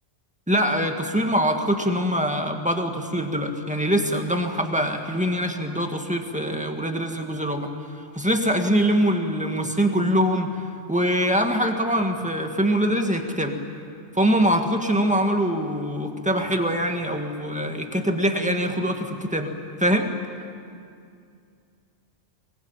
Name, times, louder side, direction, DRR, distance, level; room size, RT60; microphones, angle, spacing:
voice 1, 0.5-7.7 8.1-10.5 10.9-13.6 14.1-19.5 19.8-20.1, equal, 5° right, 4 dB, 1.8 m, -23 dB
22.5 x 22.0 x 9.0 m, 2.4 s
omnidirectional pair, 1.3 m